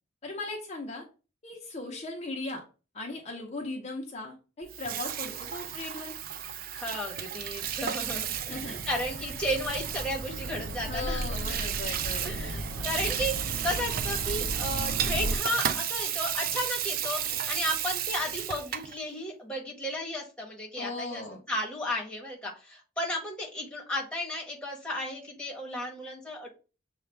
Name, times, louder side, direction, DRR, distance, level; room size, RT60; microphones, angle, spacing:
voice 1, 0.2-1.0 1.4-2.6 2.9-6.2 8.3-8.8 10.9-12.5 20.8-21.4, left 2 dB, 35° left, -1 dB, 0.7 m, -38 dB
Water tap faucet / Sink (filling or washing), 4.6-18.9, right 10 dB, 50° right, 0.3 m, -33 dB
voice 2, 6.7-11.3 12.2-26.5, left 1 dB, 5° left, -2 dB, 1.2 m, -34 dB
sound 1, 7.4-15.4, right 1 dB, 80° right, 0.6 m, -36 dB
6.6 x 2.4 x 3.3 m, 0.34 s
head